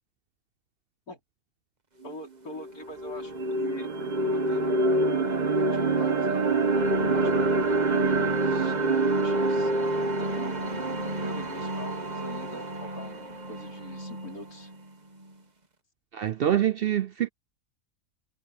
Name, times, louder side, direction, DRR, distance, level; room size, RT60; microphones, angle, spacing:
voice 1, 2.0-6.4 7.1-9.7 10.2-10.5 11.2-14.7, left 3 dB, 75° left, 4.8 m, -44 dB
sound 1, 2.0-2.1 2.6-14.6, right 2 dB, 30° right, 1.3 m, -26 dB
voice 2, 16.1-17.3, right 10 dB, 70° right, 0.5 m, -25 dB
omnidirectional pair, 1.6 m